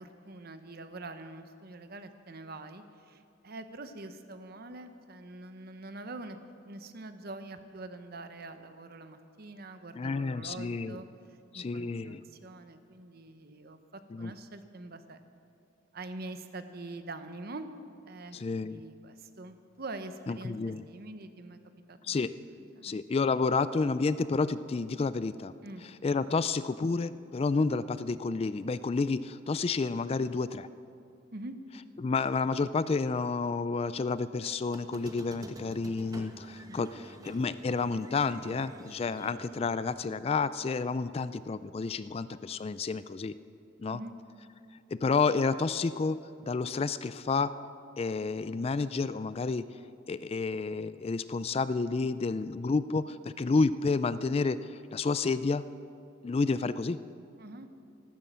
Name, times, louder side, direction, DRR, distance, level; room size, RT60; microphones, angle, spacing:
voice 1, 0.0-6.4 6.6-11.1 11.5-15.2 15.9-17.7 18.1-18.4 18.6-20.6 20.9-21.6 21.9-22.2 22.5-23.0 25.6-25.9 31.3-31.6 36.7-36.9 43.9-44.1 57.4-57.7, right 2 dB, 50° right, 9 dB, 0.9 m, -44 dB
voice 2, 10.0-11.0 11.5-12.2 14.1-14.3 18.3-18.8 20.3-20.8 22.0-22.3 22.8-25.5 26.0-30.7 32.0-43.3 43.8-44.0 44.9-46.2 46.5-47.5 48.0-49.7 50.1-54.6 54.9-55.6 56.2-57.0, left 4 dB, 30° left, 15 dB, 0.3 m, -30 dB
Squeak, 34.7-40.0, right 1 dB, 20° right, 1.0 m, -49 dB
14.5 x 12.0 x 7.4 m, 2.6 s
head